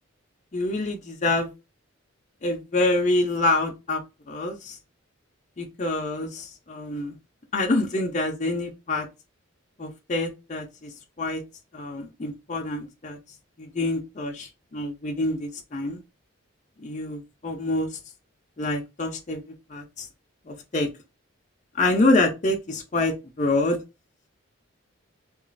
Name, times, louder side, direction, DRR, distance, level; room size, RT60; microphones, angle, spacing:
voice 1, 0.5-1.5 2.4-4.0 4.3-4.8 5.6-7.1 7.5-9.1 9.8-10.9 11.2-11.4 11.7-13.2 13.6-16.0 16.8-17.9 18.6-20.1 20.5-20.9 21.8-23.8, left 2 dB, 35° left, 0.5 m, -26 dB
3.0 x 2.4 x 2.4 m
head